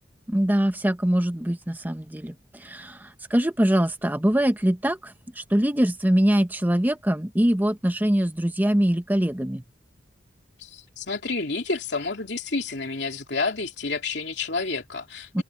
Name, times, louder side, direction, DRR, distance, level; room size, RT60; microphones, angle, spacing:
voice 1, 0.3-9.6 15.3-15.4, equal, 10° right, 0.8 m, -23 dB
voice 2, 10.6-15.4, left 3 dB, 65° left, 3.2 m, -29 dB
open air
head